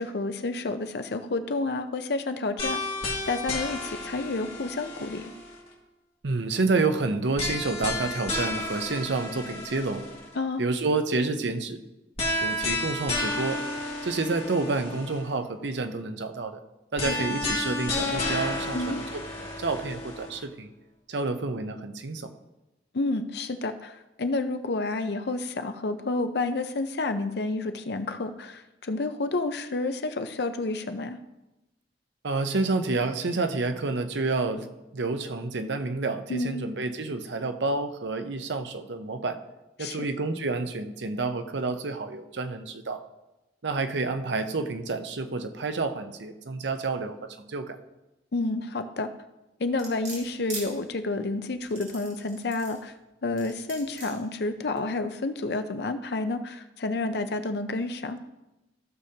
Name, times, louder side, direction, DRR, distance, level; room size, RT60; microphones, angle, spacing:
voice 1, 0.0-2.8 3.3-5.3 10.3-10.6 17.0-17.2 18.7-19.1 22.9-31.2 36.3-36.6 39.8-40.0 48.3-49.1 49.6-52.9 53.2-58.2, left 2 dB, 65° left, 9 dB, 0.6 m, -30 dB
sound 1, 2.6-5.7 7.4-10.3 12.2-15.3 17.0-20.4, left 2 dB, 35° left, 2.1 m, -32 dB
voice 2, 6.2-10.1 10.6-11.8 12.3-13.6 14.0-16.6 16.9-20.7 21.1-22.3 32.2-34.7 34.9-39.4 39.8-43.0 43.6-47.8, right 3 dB, 80° right, 8 dB, 0.7 m, -29 dB
sound 2, 49.8-50.7 51.6-52.8 53.4-54.1 54.8-54.9, right 3 dB, 45° right, 3.0 m, -39 dB
15.0 x 6.7 x 2.8 m, 0.99 s
head